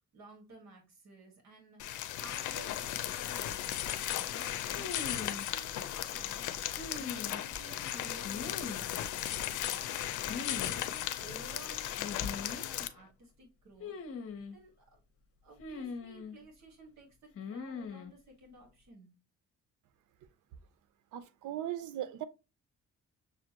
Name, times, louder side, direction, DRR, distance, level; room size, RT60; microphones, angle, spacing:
voice 1, 0.1-3.7 4.2-6.5 7.0-8.9 9.3-15.0 15.4-19.1, right 1 dB, 60° right, 1.7 m, -54 dB
sound 1, 1.8-12.9, left 12 dB, 80° left, 0.6 m, -36 dB
sound 2, 4.7-5.5 6.8-7.6 8.2-9.0 10.3-10.7 11.0-11.1 12.0-12.7 13.8-14.6 15.6-16.4 17.4-18.1, left 5 dB, 50° left, 1.1 m, -41 dB
voice 2, 21.1-22.2, right 12 dB, 80° right, 0.6 m, -38 dB
6.3 x 2.5 x 2.9 m
cardioid pair, 90°, 30 cm